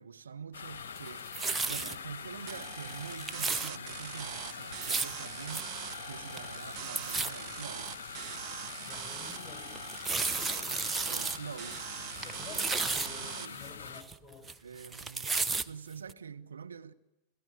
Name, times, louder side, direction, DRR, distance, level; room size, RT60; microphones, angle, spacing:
voice 1, 0.0-1.3 1.6-5.7 6.0-7.9 11.0-11.8 13.2-13.6 14.6-16.9, right 6 dB, 70° right, 0.9 m, -45 dB
sound 1, 0.5-14.0, left 7 dB, 65° left, 0.8 m, -44 dB
sound 2, 1.0-2.0 2.5-2.6 2.9-3.7 4.6-5.2 5.5-5.6 5.9-6.0 6.3-6.7 7.0-7.3 7.9-8.0 8.5-8.6 9.8-11.4 11.7-11.8 12.2-13.1 13.6-14.5 14.8-15.7 16.1-16.2, right 3 dB, 10° right, 1.0 m, -33 dB
sound 3, 2.5-13.5, right 13 dB, 40° right, 1.0 m, -43 dB
voice 2, 8.8-9.7 10.3-10.7 12.2-14.4, left 4 dB, 15° left, 5.8 m, -51 dB
29.0 x 17.0 x 9.1 m
figure-of-eight pair, 90°, 0 cm